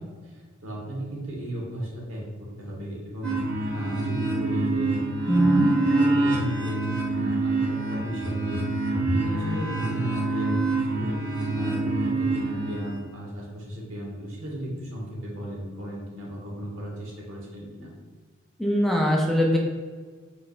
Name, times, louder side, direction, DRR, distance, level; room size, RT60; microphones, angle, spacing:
voice 1, 0.2-3.4 3.7-5.0 5.3-8.6 8.9-10.7 10.9-11.2 11.5-17.9, right 1 dB, 85° right, -3 dB, 1.3 m, -35 dB
sound 1, 3.2-13.0, right 2 dB, 60° right, 0.9 m, -26 dB
voice 2, 5.3-5.7 18.6-19.6, equal, ahead, -2 dB, 0.4 m, -21 dB
4.8 x 3.2 x 2.4 m, 1.5 s
head